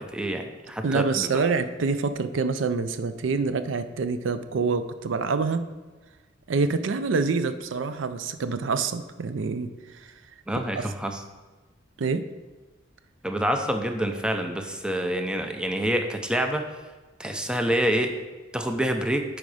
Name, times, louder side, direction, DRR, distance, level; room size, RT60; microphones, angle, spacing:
voice 1, 0.0-1.5 10.5-11.2 13.2-16.7 17.2-18.1 18.5-19.2, right 1 dB, 5° right, 5 dB, 0.5 m, -27 dB
voice 2, 0.8-5.6 6.5-10.1 10.8-10.9 12.0-12.2, right 4 dB, 75° right, 11 dB, 0.5 m, -26 dB
9.2 x 4.8 x 4.9 m, 1.2 s
head